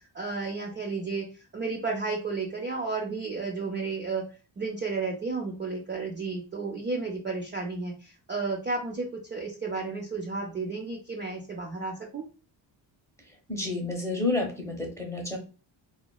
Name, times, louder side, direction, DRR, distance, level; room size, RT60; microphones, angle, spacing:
voice 1, 0.1-1.3 1.5-4.2 4.6-12.2, right 4 dB, 25° right, -1 dB, 0.5 m, -32 dB
voice 2, 13.5-15.4, left 2 dB, 5° left, 1 dB, 0.8 m, -30 dB
3.1 x 2.2 x 2.2 m, 0.35 s
cardioid pair, 100°, 45 cm